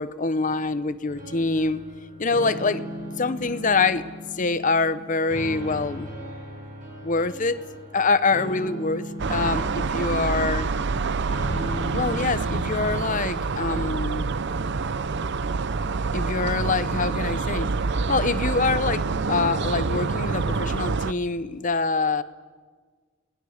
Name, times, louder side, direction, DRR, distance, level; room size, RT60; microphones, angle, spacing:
voice 1, 0.0-1.8 2.2-2.9 3.2-4.0 4.3-6.1 7.0-7.6 7.9-10.7 11.9-14.3 16.1-17.7 18.1-22.2, left 3 dB, 40° left, 14 dB, 0.8 m, -25 dB
sound 1, 1.1-13.3, equal, 40° right, 6.7 m, -37 dB
sound 2, 9.2-21.1, right 4 dB, 55° right, 0.6 m, -27 dB
29.0 x 19.5 x 6.5 m, 1.5 s
head